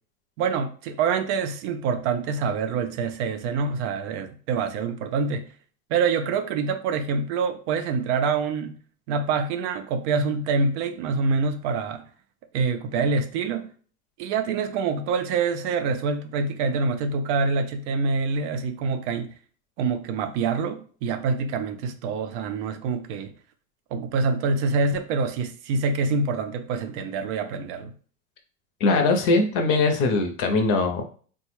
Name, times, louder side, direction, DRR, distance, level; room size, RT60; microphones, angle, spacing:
voice 1, 0.4-5.5 5.9-8.8 9.1-12.1 12.5-13.7 14.2-19.3 19.8-23.3 23.9-27.9, right 4 dB, 50° right, 0.5 m, -26 dB
voice 2, 28.8-31.0, left 3 dB, 40° left, 0.7 m, -21 dB
3.2 x 2.2 x 3.0 m
hypercardioid pair, 120°, 45 cm